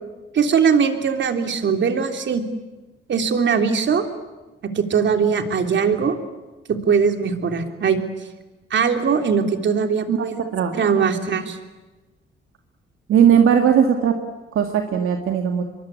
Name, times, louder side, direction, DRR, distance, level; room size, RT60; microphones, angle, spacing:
voice 1, 0.3-2.4 3.1-4.1 4.7-6.2 6.7-8.0 8.7-10.4 10.7-11.6, right 6 dB, 60° right, 6 dB, 3.3 m, -20 dB
voice 2, 13.1-14.2 14.5-15.6, right 8 dB, 80° right, 4 dB, 2.2 m, -17 dB
25.5 x 23.0 x 8.6 m, 1.2 s
cardioid pair, 100°, 21 cm